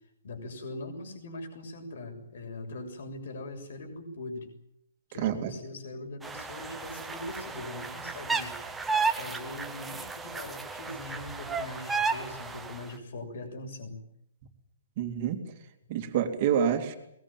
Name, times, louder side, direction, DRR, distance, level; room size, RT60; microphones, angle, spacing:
voice 1, 0.2-4.5 5.1-8.6 9.1-14.0, left 2 dB, 55° left, 6 dB, 7.2 m, -41 dB
voice 2, 5.2-5.5 15.0-15.4 15.9-17.0, right 8 dB, 30° right, 6 dB, 2.7 m, -27 dB
sound 1, 6.2-12.8, right 4 dB, 5° right, 1.0 m, -33 dB
23.0 x 21.5 x 9.1 m, 0.77 s
hypercardioid pair, 180°, 0 cm